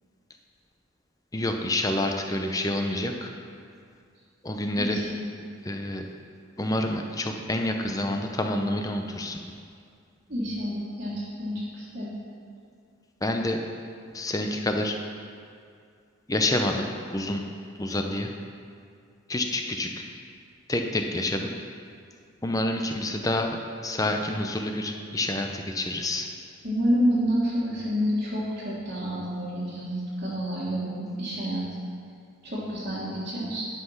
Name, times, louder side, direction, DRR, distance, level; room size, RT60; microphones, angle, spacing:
voice 1, 1.3-3.3 4.4-5.0 5.6-6.1 6.6-9.4 13.2-13.6 14.1-15.0 16.3-17.5 17.8-18.3 19.3-20.0 20.7-21.5 22.4-23.6 23.8-26.3, left 1 dB, 15° left, 4 dB, 0.6 m, -28 dB
voice 2, 4.8-5.2 10.3-12.1 26.6-31.6 32.4-33.6, equal, 40° right, -9 dB, 1.8 m, -28 dB
11.0 x 5.7 x 5.8 m, 2.3 s
head